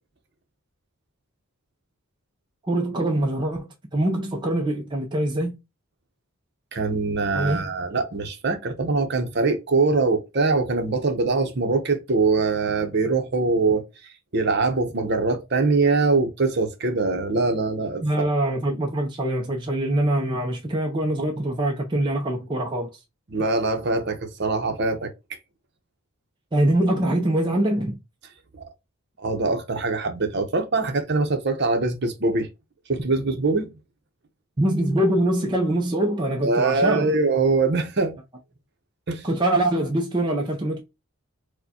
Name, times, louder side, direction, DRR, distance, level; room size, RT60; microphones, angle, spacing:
voice 1, 2.7-5.6 7.3-7.7 18.0-22.9 26.5-28.0 34.6-37.1 39.2-40.8, right 1 dB, 20° right, 0.5 m, -23 dB
voice 2, 6.7-13.8 14.3-18.0 23.3-25.1 28.5-28.6 29.2-32.5 32.9-33.7 36.4-38.2 39.1-39.2, right 3 dB, 50° right, 0.7 m, -23 dB
4.5 x 2.2 x 2.8 m
head